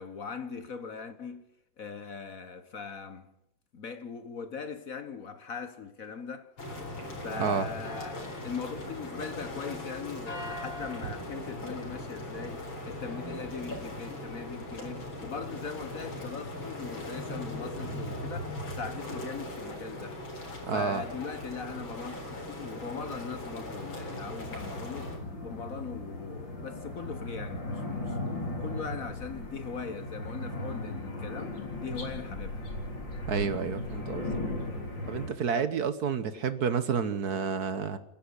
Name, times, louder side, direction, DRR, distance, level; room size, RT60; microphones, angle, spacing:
voice 1, 0.0-1.4 1.8-3.3 3.7-6.5 7.2-20.2 20.7-25.1 25.4-28.2 28.6-32.7 36.3-36.5, left 6 dB, 50° left, 1.4 m, -40 dB
sound 1, 6.6-25.2, left 1 dB, 85° left, 4.7 m, -39 dB
voice 2, 20.7-21.0 33.3-34.3 35.1-38.0, right 6 dB, 55° right, 1.5 m, -30 dB
sound 2, 22.8-35.3, left 2 dB, 65° left, 4.4 m, -37 dB
28.0 x 10.5 x 9.8 m
omnidirectional pair, 2.1 m